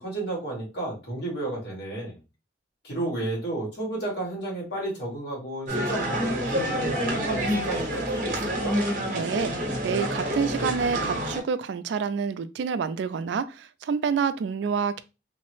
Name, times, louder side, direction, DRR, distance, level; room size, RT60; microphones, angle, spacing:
voice 1, 0.0-2.2 2.8-8.8, right 2 dB, 65° left, 1.7 m, -32 dB
sound 1, 5.7-11.4, equal, 45° right, 0.8 m, -28 dB
voice 2, 9.1-9.5 9.8-15.0, right 6 dB, 70° right, 0.3 m, -28 dB
3.1 x 2.0 x 3.0 m
head